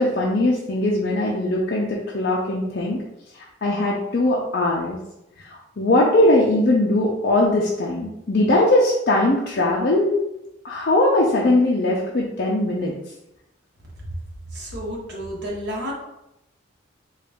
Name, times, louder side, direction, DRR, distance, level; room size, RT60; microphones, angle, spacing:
voice 1, 0.0-3.0 3.3-5.0 5.8-10.1 10.6-12.9, left 1 dB, 50° left, -3 dB, 0.5 m, -20 dB
voice 2, 14.5-15.9, equal, 60° right, -4 dB, 1.1 m, -31 dB
3.8 x 2.4 x 3.4 m, 0.87 s
head